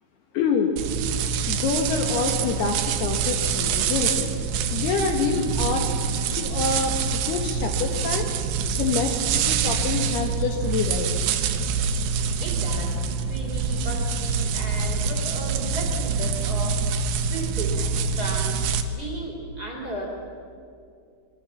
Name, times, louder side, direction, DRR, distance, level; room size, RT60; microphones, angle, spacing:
voice 1, 0.3-0.7 1.5-4.3 4.7-5.9 6.3-8.3 8.8-11.1, left 5 dB, 65° left, 3 dB, 2.9 m, -26 dB
sound 1, 0.8-18.8, right 5 dB, 70° right, 3.0 m, -25 dB
voice 2, 12.4-13.0 13.3-18.6 18.9-20.1, right 1 dB, 20° right, 0 dB, 3.3 m, -35 dB
26.5 x 22.0 x 7.2 m, 2.4 s
omnidirectional pair, 5.6 m